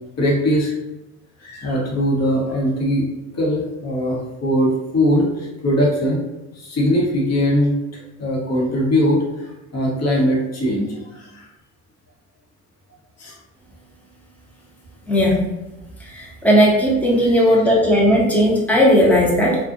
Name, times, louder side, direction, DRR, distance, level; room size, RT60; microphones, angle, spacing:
voice 1, 0.2-0.7 1.4-3.0 3.3-6.2 6.5-11.5 13.2-13.4 17.2-17.6, equal, 40° left, -2 dB, 1.1 m, -21 dB
voice 2, 15.1-15.4 16.1-19.6, equal, 5° left, -4 dB, 0.8 m, -16 dB
2.4 x 2.4 x 2.5 m, 1.0 s
hypercardioid pair, 70°, 40 cm